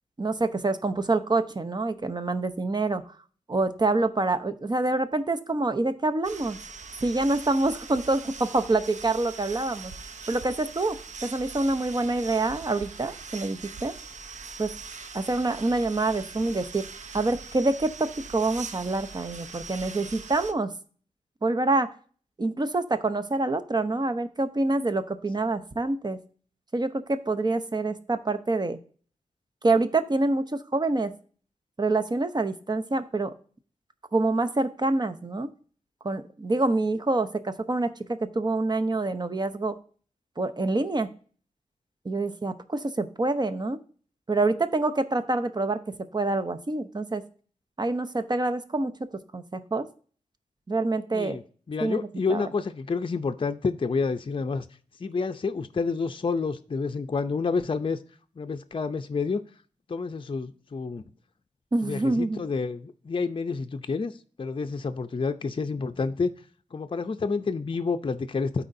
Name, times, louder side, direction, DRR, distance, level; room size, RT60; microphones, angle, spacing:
voice 1, 0.2-3.0 3.5-6.6 7.0-9.9 10.3-11.0 11.2-13.9 14.6-14.7 15.1-16.9 17.1-20.7 21.4-21.9 22.4-26.2 26.7-28.8 29.6-31.1 31.8-33.3 34.1-35.5 36.0-39.8 40.4-41.1 42.0-43.8 44.3-47.2 47.8-48.9 49.3-49.9 50.7-51.4 51.8-52.4 61.7-62.4, right 2 dB, 35° right, 0.8 m, -26 dB
sound 1, 6.2-20.5, right 5 dB, 65° right, 0.6 m, -42 dB
voice 2, 51.7-54.7 55.0-58.0 58.4-59.4 59.9-61.0 61.8-64.1 64.4-66.3 66.7-68.6, left 4 dB, 40° left, 0.5 m, -29 dB
12.5 x 4.3 x 2.7 m
cardioid pair, 55°, 13 cm